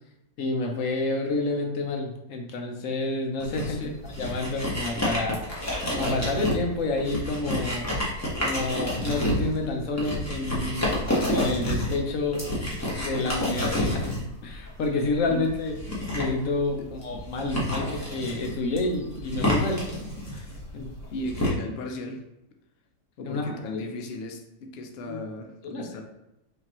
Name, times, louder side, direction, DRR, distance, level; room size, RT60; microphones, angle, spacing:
voice 1, 0.4-5.4 6.0-7.9 8.4-12.5 13.0-14.1 14.4-15.8 16.1-19.8 20.3-20.5 20.7-20.9 23.2-23.8 25.1-25.2 25.6-25.9, left 2 dB, 60° left, 2 dB, 1.0 m, -29 dB
sound 1, 3.4-21.5, left 1 dB, 15° left, 0.8 m, -29 dB
voice 2, 21.1-22.2 23.2-26.0, left 2 dB, 85° left, 3 dB, 0.5 m, -36 dB
5.2 x 2.8 x 2.9 m, 0.90 s
omnidirectional pair, 1.7 m